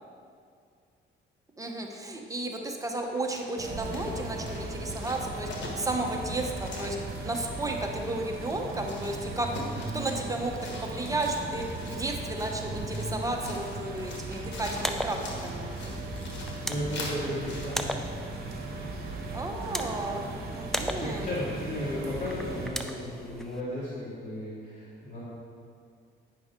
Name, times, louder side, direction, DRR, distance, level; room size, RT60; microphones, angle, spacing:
voice 1, 1.6-7.0 7.2-9.5 9.9-15.7 19.3-21.3, right 2 dB, 15° right, 2 dB, 0.9 m, -33 dB
sound 1, 3.0-17.7, left 2 dB, 65° left, 1.5 m, -44 dB
sound 2, 3.6-22.7, right 2 dB, 50° right, 1.3 m, -37 dB
sound 3, 14.6-23.6, equal, ahead, 0.5 m, -38 dB
voice 2, 16.7-17.9 20.9-25.2, left 1 dB, 40° left, -9 dB, 2.1 m, -34 dB
9.2 x 5.9 x 3.7 m, 2.2 s
cardioid pair, 90°, 20 cm